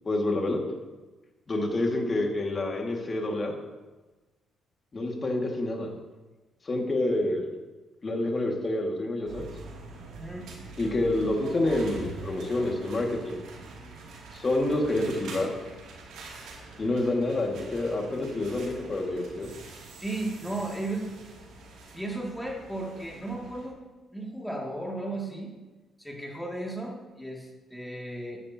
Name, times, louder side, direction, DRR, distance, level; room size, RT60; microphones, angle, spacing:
voice 1, 0.0-0.6 1.5-3.6 4.9-5.9 6.6-7.5 8.0-9.5 10.8-13.4 14.3-15.5 16.8-19.5, left 2 dB, 35° left, 1 dB, 2.1 m, -28 dB
sound 1, 9.3-23.7, right 3 dB, 85° right, 2.7 m, -45 dB
voice 2, 10.2-10.5 20.0-21.2 21.9-23.8 24.1-25.5 26.0-28.4, right 2 dB, ahead, -2 dB, 2.5 m, -35 dB
13.5 x 10.5 x 2.9 m, 1.2 s
cardioid pair, 90°, 0 cm